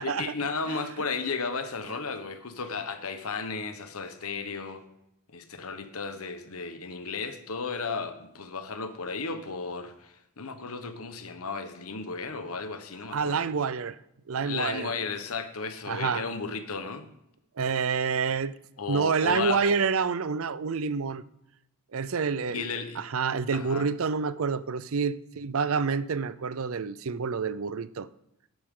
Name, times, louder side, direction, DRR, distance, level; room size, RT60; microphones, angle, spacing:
voice 1, 0.0-4.8 5.3-13.5 14.4-17.1 18.8-19.8 22.5-23.0 23.5-23.9, left 4 dB, 80° left, 1.2 m, -34 dB
voice 2, 13.1-14.0 14.3-14.9 15.9-16.2 17.6-18.6 18.9-21.2 21.9-22.7 23.0-28.1, right 5 dB, 70° right, 0.5 m, -28 dB
12.5 x 11.0 x 3.8 m
head